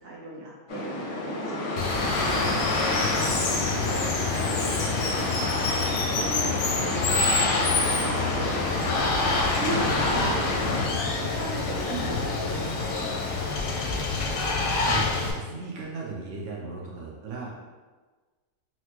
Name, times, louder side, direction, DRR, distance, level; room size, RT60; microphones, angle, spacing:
voice 1, 0.0-0.9 1.3-5.3 6.1-8.6 9.1-9.2 9.5-10.5 11.1-13.2, right 2 dB, 50° right, -4 dB, 0.7 m, -37 dB
sound 1, 0.7-10.9, left 2 dB, 85° left, 1.3 m, -29 dB
Water, 1.8-15.3, left 3 dB, 70° left, 0.8 m, -27 dB
voice 2, 9.6-10.5 14.8-15.1 15.3-17.5, right 4 dB, 90° right, -3 dB, 0.6 m, -36 dB
4.3 x 2.0 x 2.8 m, 1.3 s
omnidirectional pair, 1.8 m